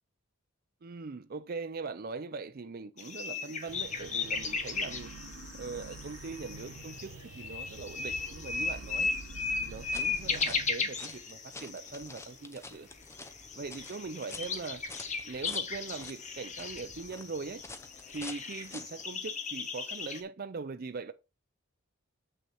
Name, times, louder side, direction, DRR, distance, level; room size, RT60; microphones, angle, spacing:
voice 1, 0.8-5.1 5.6-9.1 9.6-12.9 13.5-14.8 15.3-17.6 18.1-21.1, right 4 dB, 45° right, 0.5 m, -41 dB
sound 1, 3.0-12.4 12.7-12.8 13.0-20.2, left 5 dB, 35° left, 1.1 m, -36 dB
sound 2, 3.7-10.7, right 3 dB, 75° right, 1.1 m, -47 dB
sound 3, 9.7-19.0, left 3 dB, 15° left, 0.6 m, -49 dB
6.9 x 6.3 x 4.2 m
head